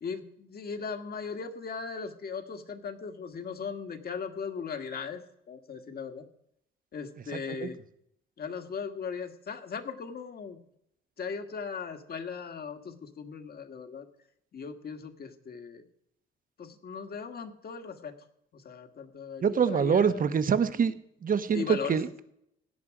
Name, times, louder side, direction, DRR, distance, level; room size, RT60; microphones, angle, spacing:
voice 1, 0.0-5.2 5.5-6.3 6.9-7.8 8.4-10.6 11.2-14.1 14.5-15.8 16.6-18.1 18.5-20.3 21.5-22.0, left 5 dB, 50° left, 7 dB, 1.7 m, -38 dB
voice 2, 7.3-7.7 19.4-20.9 21.2-22.2, right 7 dB, 45° right, 12 dB, 1.1 m, -25 dB
16.5 x 9.6 x 5.0 m, 0.74 s
cardioid pair, 90°, 20 cm